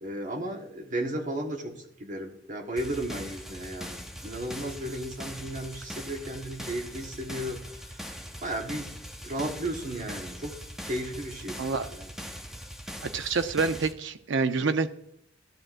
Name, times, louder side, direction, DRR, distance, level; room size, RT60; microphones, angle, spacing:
voice 1, 0.0-1.7 2.0-7.6 7.9-8.0 8.4-8.9 9.2-10.5 10.8-11.6 11.9-12.1, right 1 dB, 45° right, 2 dB, 1.3 m, -34 dB
sound 1, 2.8-13.9, equal, 5° right, 0.6 m, -41 dB
voice 2, 11.6-11.9 13.0-14.9, right 4 dB, 80° right, 10 dB, 0.6 m, -27 dB
13.5 x 7.5 x 2.5 m, 0.74 s
head